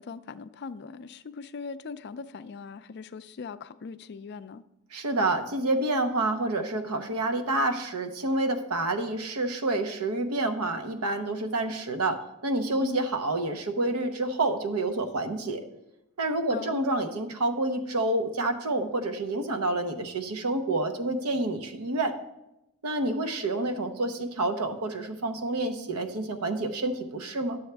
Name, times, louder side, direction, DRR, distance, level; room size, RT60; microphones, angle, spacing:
voice 1, 0.0-4.6 12.8-13.1 16.5-16.9, left 4 dB, 50° left, 12 dB, 0.4 m, -40 dB
voice 2, 4.9-15.6 16.2-22.1 22.8-27.6, right 2 dB, 85° right, 8 dB, 0.8 m, -28 dB
11.5 x 7.1 x 3.4 m, 0.91 s
head